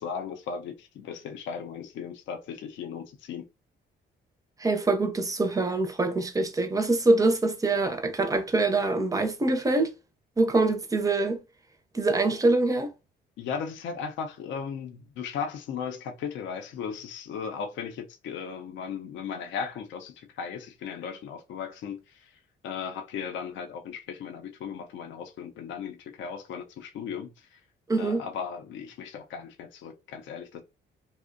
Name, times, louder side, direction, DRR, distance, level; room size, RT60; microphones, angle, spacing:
voice 1, 0.0-3.5 13.4-22.3 22.6-27.6 28.0-30.6, left 6 dB, 70° left, 0.4 m, -36 dB
voice 2, 4.6-9.9 10.4-11.4 11.9-12.9 27.9-28.3, right 2 dB, 15° right, 0.5 m, -24 dB
2.5 x 2.0 x 2.5 m
cardioid pair, 90°, 20 cm